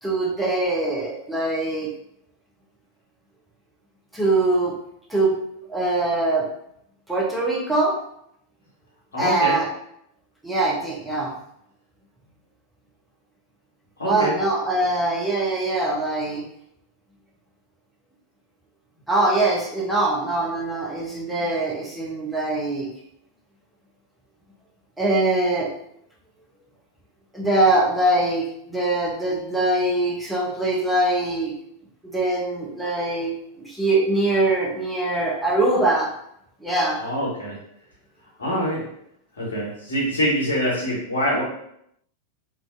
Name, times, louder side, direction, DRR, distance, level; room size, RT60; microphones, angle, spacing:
voice 1, 0.0-1.9 4.1-4.7 5.1-5.3 5.7-6.5 7.1-8.0 9.2-9.7 10.4-11.3 14.0-16.4 19.1-22.9 25.0-25.7 27.3-28.4 28.7-31.5 32.1-33.3 33.6-36.1 36.6-37.0, right 2 dB, ahead, -5 dB, 0.6 m, -22 dB
voice 2, 9.1-9.6 14.0-14.3 37.0-37.6 38.4-38.8 39.4-41.4, equal, 70° left, -5 dB, 0.9 m, -24 dB
2.5 x 2.1 x 2.5 m, 0.74 s
figure-of-eight pair, 90°, 0 cm